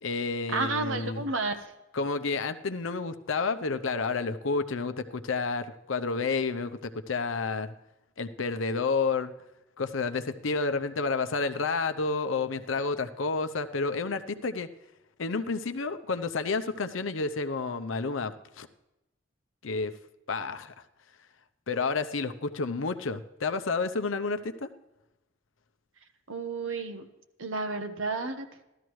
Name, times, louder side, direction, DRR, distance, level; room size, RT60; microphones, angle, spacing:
voice 1, 0.0-1.2 1.9-7.7 8.2-9.3 9.8-14.7 15.2-18.7 19.6-19.9 20.3-20.7 21.7-24.7, left 4 dB, 85° left, 10 dB, 0.7 m, -30 dB
voice 2, 0.5-1.6 26.3-27.0 27.4-28.6, right 3 dB, 85° right, 7 dB, 1.2 m, -31 dB
15.5 x 12.5 x 3.1 m, 0.96 s
head